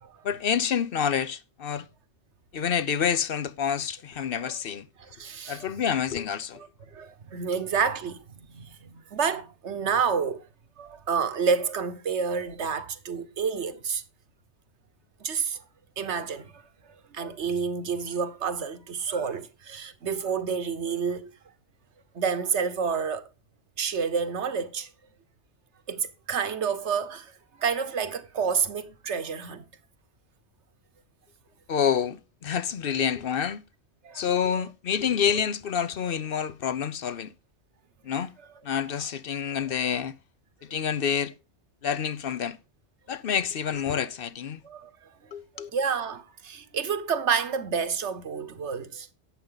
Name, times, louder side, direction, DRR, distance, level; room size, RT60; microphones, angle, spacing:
voice 1, 0.2-1.9 2.5-4.9 5.5-6.6 7.5-7.6 31.7-33.6 34.1-37.3 38.0-38.3 38.6-40.1 40.7-41.3 41.8-42.6 43.1-44.6 45.3-45.7, left 8 dB, 60° left, 0.8 m, -28 dB
voice 2, 5.0-5.7 6.5-6.7 6.9-10.4 10.8-14.0 15.2-15.6 16.0-16.6 17.1-21.3 22.1-23.2 23.8-24.9 25.9-27.3 27.6-29.6 34.0-34.2 34.5-34.6 44.6-44.9 45.5-49.1, right 6 dB, 85° right, 1.4 m, -29 dB
11.5 x 8.5 x 3.9 m
omnidirectional pair, 1.1 m